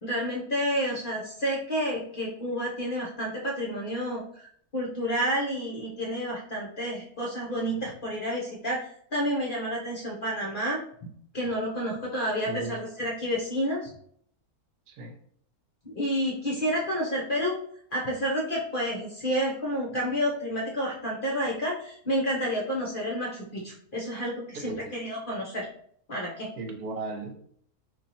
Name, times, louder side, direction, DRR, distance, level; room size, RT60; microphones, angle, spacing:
voice 1, 0.0-4.5 4.7-10.8 11.3-13.9 15.8-17.6 17.9-25.7 26.1-26.5, equal, 45° left, -3 dB, 0.7 m, -30 dB
voice 2, 12.5-12.8 14.9-15.1 24.6-24.8 26.6-27.4, right 3 dB, 75° right, 3 dB, 1.2 m, -35 dB
2.9 x 2.6 x 4.0 m, 0.62 s
omnidirectional pair, 1.6 m